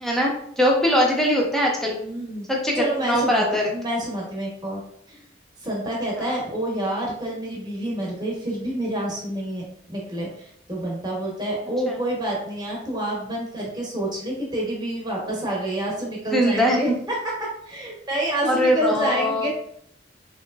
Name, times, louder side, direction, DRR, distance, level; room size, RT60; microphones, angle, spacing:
voice 1, 0.0-2.0 2.5-3.7 6.2-6.3 11.9-12.0 16.3-17.0 18.4-19.5, equal, ahead, -1 dB, 0.4 m, -21 dB
voice 2, 2.0-2.5 2.8-4.8 5.1-5.2 5.6-16.9 17.4-19.5, right 1 dB, 25° right, -3 dB, 0.8 m, -28 dB
3.2 x 2.8 x 2.2 m, 0.68 s
head